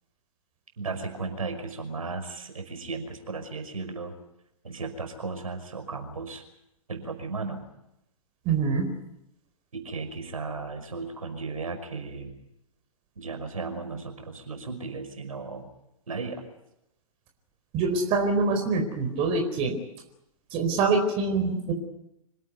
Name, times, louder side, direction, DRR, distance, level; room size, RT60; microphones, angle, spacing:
voice 1, 0.8-4.1 4.6-6.4 6.9-7.6 9.7-12.4 13.2-15.7 16.1-16.4, right 4 dB, 75° right, 6 dB, 5.6 m, -35 dB
voice 2, 8.4-8.9 17.7-19.8 20.5-21.7, right 4 dB, 30° right, 4 dB, 4.4 m, -25 dB
26.5 x 17.5 x 9.4 m, 0.84 s
figure-of-eight pair, 115°, 18 cm